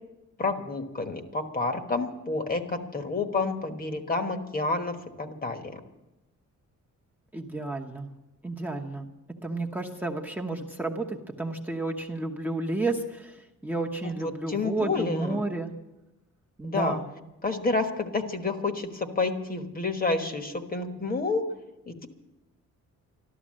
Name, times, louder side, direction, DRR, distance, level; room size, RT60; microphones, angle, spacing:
voice 1, 0.4-5.8 14.0-15.4 16.6-17.0 17.4-21.4 21.9-22.1, left 3 dB, 30° left, 7 dB, 1.3 m, -29 dB
voice 2, 7.3-8.1 8.4-9.1 9.4-15.7 16.6-17.0, right 2 dB, 5° right, 3 dB, 1.0 m, -31 dB
13.0 x 12.5 x 7.5 m, 0.98 s
cardioid pair, 135°, 30 cm